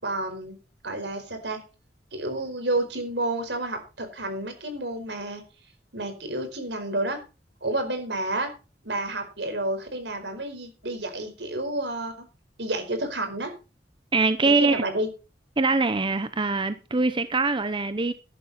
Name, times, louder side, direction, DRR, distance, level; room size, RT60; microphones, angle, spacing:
voice 1, 0.0-0.6 0.8-1.6 2.1-5.4 5.9-7.2 7.6-8.5 8.8-12.2 12.6-13.5 14.4-15.1, right 2 dB, 75° right, 7 dB, 4.8 m, -30 dB
voice 2, 14.1-14.8 15.6-18.1, right 3 dB, 30° right, 12 dB, 0.8 m, -23 dB
13.5 x 11.5 x 4.3 m, 0.32 s
head